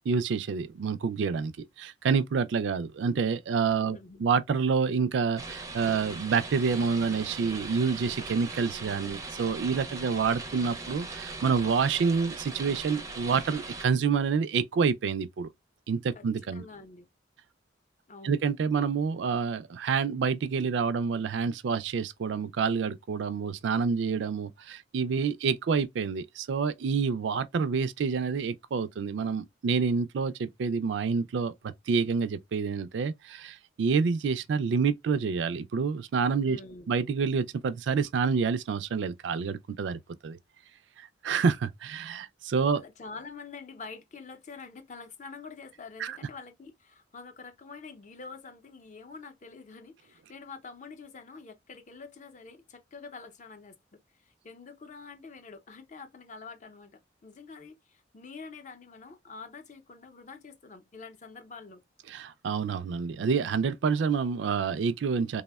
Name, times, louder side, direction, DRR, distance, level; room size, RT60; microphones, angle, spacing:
voice 1, 0.1-1.5 1.8-15.5 15.9-16.6 18.2-31.5 31.9-36.6 36.9-40.4 41.0-42.8 46.0-46.2 62.1-65.4, right 5 dB, 85° right, 0.4 m, -28 dB
voice 2, 3.8-4.3 16.1-16.2 16.5-17.1 18.1-18.4 36.4-37.0 42.7-53.8 54.4-61.8, left 4 dB, 40° left, 0.5 m, -46 dB
sound 1, 5.4-13.8, right 3 dB, 20° right, 0.4 m, -40 dB
3.4 x 2.1 x 2.2 m
head